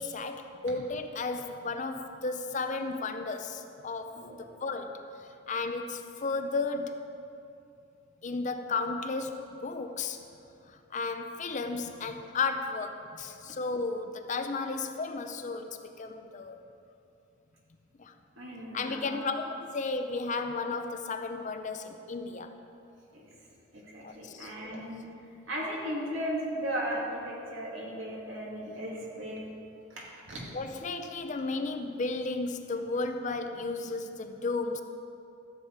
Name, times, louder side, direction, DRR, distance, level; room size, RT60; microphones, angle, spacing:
voice 1, 0.0-4.1 4.4-7.0 8.2-9.4 9.6-10.2 10.9-16.6 18.0-18.1 18.7-22.5 24.0-24.8 30.5-34.8, left 3 dB, 35° left, 7 dB, 0.5 m, -34 dB
voice 2, 18.4-19.4 23.1-23.2 23.7-25.0 25.5-29.4 29.9-30.4, equal, 70° right, -4 dB, 2.4 m, -36 dB
13.5 x 7.3 x 4.7 m, 2.7 s
head